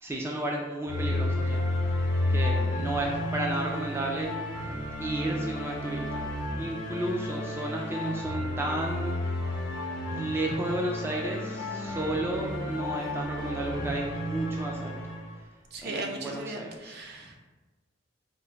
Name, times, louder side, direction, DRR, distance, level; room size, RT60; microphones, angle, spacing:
voice 1, 0.0-1.7 1.9-4.3 4.6-6.3 6.6-9.2 10.2-15.0 15.4-15.5 15.8-17.4, right 1 dB, 15° right, -1 dB, 0.3 m, -33 dB
sound 1, 0.9-15.4, left 1 dB, 70° left, 0.7 m, -32 dB
voice 2, 15.7-17.4, right 2 dB, 60° right, 1 dB, 0.6 m, -37 dB
3.8 x 2.1 x 3.3 m, 1.2 s
head